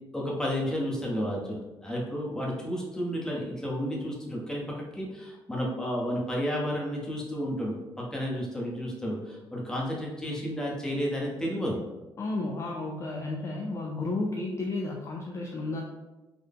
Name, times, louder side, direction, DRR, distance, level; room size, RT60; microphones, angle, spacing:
voice 1, 0.1-11.8, equal, 5° left, -3 dB, 0.8 m, -32 dB
voice 2, 12.2-15.8, left 2 dB, 30° left, -1 dB, 0.4 m, -32 dB
3.8 x 2.1 x 3.5 m, 1.1 s
cardioid pair, 130°, 9 cm